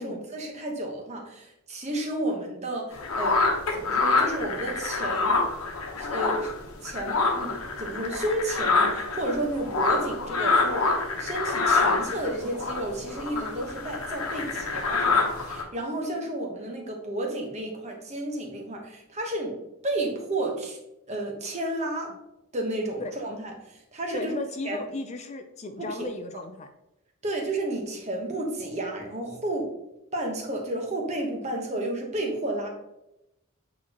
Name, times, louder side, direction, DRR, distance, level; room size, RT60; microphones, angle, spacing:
voice 1, 0.0-3.4 3.7-5.4 5.9-6.5 6.8-10.9 11.2-20.8 21.1-22.1 22.5-24.3 24.6-24.8 25.8-26.0 26.3-26.4 27.2-29.7 30.1-32.7, right 1 dB, 30° right, 1 dB, 1.1 m, -32 dB
sound 1, 2.9-6.6 6.8-15.6, left 3 dB, 85° left, 1.1 m, -26 dB
voice 2, 24.1-26.7, left 2 dB, 30° left, 6 dB, 0.4 m, -35 dB
8.4 x 4.1 x 2.9 m, 0.89 s
head